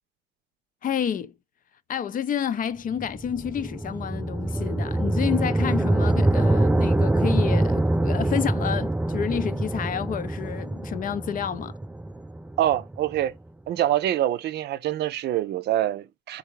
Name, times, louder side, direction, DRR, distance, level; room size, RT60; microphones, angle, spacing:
voice 1, 0.8-1.3 1.9-11.7, left 8 dB, 45° left, 0.5 m, -29 dB
sound 1, 2.9-13.2, right 1 dB, 10° right, 0.3 m, -24 dB
voice 2, 12.6-13.3 13.7-16.4, right 12 dB, 60° right, 0.6 m, -25 dB
3.6 x 2.6 x 4.6 m
hypercardioid pair, 60°, 19 cm